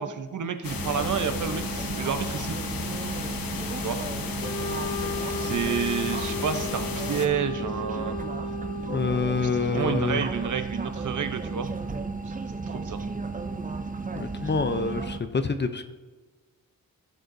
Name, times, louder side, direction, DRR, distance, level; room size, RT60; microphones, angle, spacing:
voice 1, 0.0-2.6 3.8-4.0 5.4-8.2 9.3-11.7 12.3-12.4 12.7-13.0, right 7 dB, 60° right, 8 dB, 0.8 m, -30 dB
sound 1, 0.6-7.3, left 5 dB, 80° left, 0.9 m, -34 dB
sound 2, 0.7-15.2, right 4 dB, 25° right, 0.6 m, -34 dB
Wind instrument woodwind instrument, 4.4-9.5, left 3 dB, 50° left, 2.0 m, -35 dB
voice 2, 8.9-10.3 14.1-15.8, left 4 dB, 30° left, 9 dB, 0.6 m, -27 dB
15.5 x 6.5 x 2.7 m, 1.3 s
wide cardioid pair, 105°, 34 cm